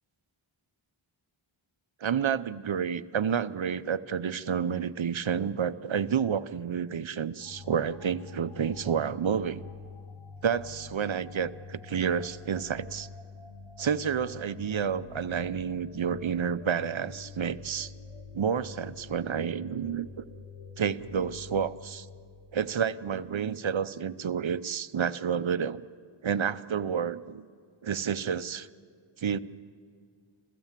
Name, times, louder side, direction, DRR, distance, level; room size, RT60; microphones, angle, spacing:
voice 1, 2.0-9.6 10.4-13.1 13.8-17.9 18.3-20.2 20.8-22.1 22.5-25.8 26.2-27.4 27.8-28.7 29.2-29.4, right 7 dB, 65° right, 15 dB, 0.7 m, -30 dB
sound 1, 7.4-23.8, left 4 dB, 75° left, 2.7 m, -46 dB
28.5 x 16.0 x 7.4 m, 2.1 s
wide cardioid pair, 55°, 50 cm